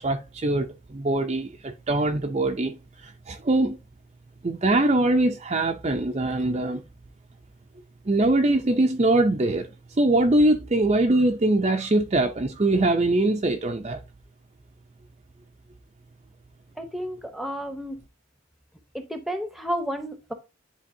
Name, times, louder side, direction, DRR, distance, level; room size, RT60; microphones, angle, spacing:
voice 1, 0.0-3.8 4.4-6.8 8.1-9.7 10.0-14.0, right 2 dB, 30° right, 0.5 m, -22 dB
voice 2, 16.8-18.0 18.9-20.3, equal, ahead, 0.7 m, -31 dB
10.0 x 3.8 x 2.7 m
head